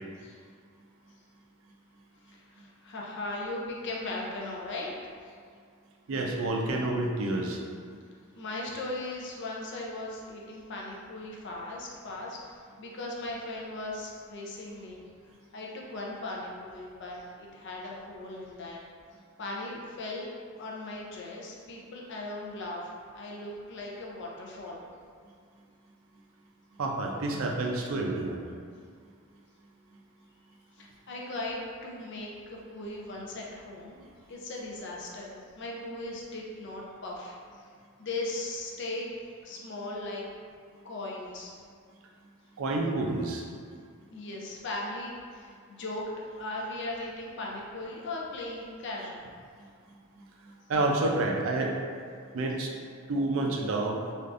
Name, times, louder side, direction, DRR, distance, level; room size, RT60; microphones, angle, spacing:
voice 1, 2.2-5.3 8.3-15.0 15.5-18.8 19.4-20.3 20.6-24.8 30.7-37.7 38.0-39.1 39.4-40.2 40.8-41.6 44.1-49.2, left 2 dB, 55° left, -2 dB, 0.5 m, -38 dB
voice 2, 6.1-7.6 26.8-28.4 42.6-43.4 50.4-51.8 52.3-52.7 53.1-54.0, right 2 dB, 65° right, 0 dB, 0.4 m, -29 dB
3.4 x 2.5 x 2.4 m, 2.1 s
head